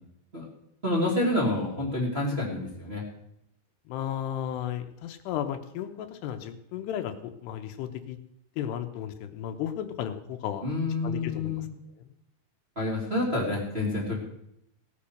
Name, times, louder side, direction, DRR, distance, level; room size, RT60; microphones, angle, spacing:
voice 1, 0.8-3.0 10.6-11.7 12.7-14.2, left 2 dB, 15° right, -5 dB, 2.5 m, -28 dB
voice 2, 3.9-8.2 8.6-10.7 11.0-11.7, left 10 dB, 80° left, 8 dB, 2.9 m, -34 dB
17.0 x 8.6 x 6.5 m, 0.80 s
omnidirectional pair, 4.9 m